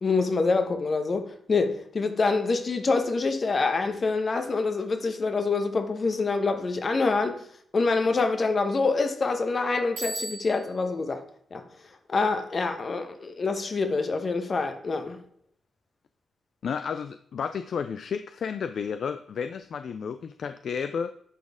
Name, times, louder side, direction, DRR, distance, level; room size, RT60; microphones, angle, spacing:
voice 1, 0.0-7.4 7.7-11.2 11.5-11.6 12.1-15.2, left 4 dB, 50° left, 1.1 m, -26 dB
Bicycle bell, 10.0-10.9, right 1 dB, 85° right, 2.5 m, -36 dB
voice 2, 16.6-21.1, left 6 dB, 65° left, 0.3 m, -32 dB
11.0 x 4.2 x 3.6 m
supercardioid pair, 45°, 0 cm